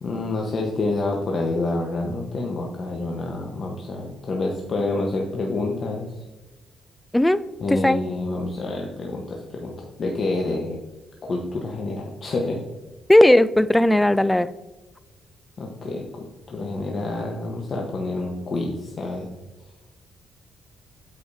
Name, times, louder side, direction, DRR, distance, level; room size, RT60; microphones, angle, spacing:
voice 1, 0.0-6.1 7.6-10.8 11.2-12.6 15.6-19.3, left 2 dB, 45° left, 0 dB, 1.0 m, -28 dB
voice 2, 13.1-14.5, left 1 dB, 10° left, 15 dB, 0.3 m, -16 dB
8.3 x 5.0 x 2.7 m, 1.1 s
cardioid pair, 90°, 0 cm